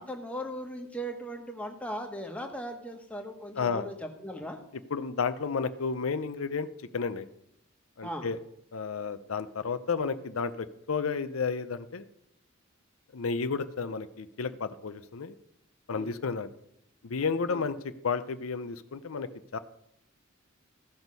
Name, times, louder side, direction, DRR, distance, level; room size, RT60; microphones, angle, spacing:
voice 1, 0.0-3.9 4.2-4.6 8.0-8.3 15.9-16.1 17.5-17.7, equal, 5° left, 2 dB, 1.3 m, -38 dB
voice 2, 3.6-3.9 4.9-6.7 6.9-7.3 8.0-8.4 8.7-12.1 13.1-15.4 15.9-16.5 17.0-19.6, left 5 dB, 85° left, 11 dB, 0.6 m, -32 dB
15.0 x 6.2 x 5.4 m, 0.78 s
head